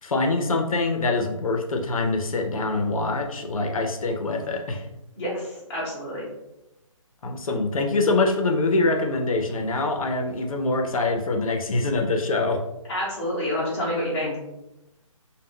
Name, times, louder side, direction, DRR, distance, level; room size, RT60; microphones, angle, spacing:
voice 1, 0.0-4.9 7.2-12.6, left 3 dB, 80° left, 3 dB, 0.6 m, -24 dB
voice 2, 5.2-6.3 12.9-14.3, left 1 dB, 10° left, -9 dB, 0.7 m, -28 dB
2.2 x 2.2 x 3.5 m, 0.91 s
hypercardioid pair, 165°, 18 cm